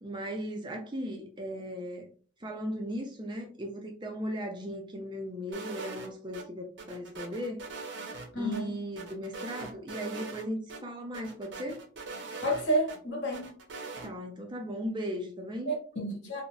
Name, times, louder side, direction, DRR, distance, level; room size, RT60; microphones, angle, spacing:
voice 1, 0.0-2.1 2.4-7.6 8.4-11.8 14.0-15.7, equal, 25° right, 0.5 m, -37 dB
sound 1, 5.5-6.4 6.8-8.6 9.0-10.4 10.7-10.8 11.1-13.0 13.3-14.1, right 3 dB, 70° right, 0.7 m, -42 dB
voice 2, 8.3-8.7 12.4-13.5 15.7-16.4, right 1 dB, 70° left, 1.2 m, -30 dB
4.0 x 2.1 x 2.3 m
head